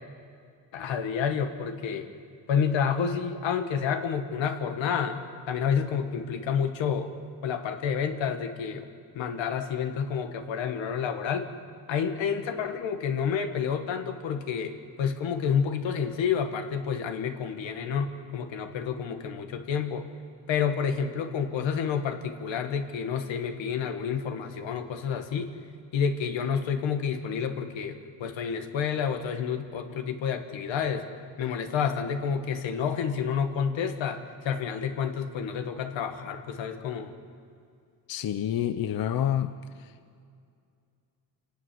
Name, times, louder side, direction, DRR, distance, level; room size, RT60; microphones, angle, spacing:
voice 1, 0.7-2.1 2.5-5.2 5.5-7.1 7.4-8.9 9.1-11.5 11.9-20.1 20.5-25.5 25.9-31.1 31.4-37.1, left 7 dB, 90° left, 6 dB, 1.9 m, -29 dB
voice 2, 38.1-39.5, left 10 dB, 55° left, 11 dB, 0.8 m, -27 dB
27.5 x 11.5 x 9.4 m, 2.3 s
cardioid pair, 115°, 44 cm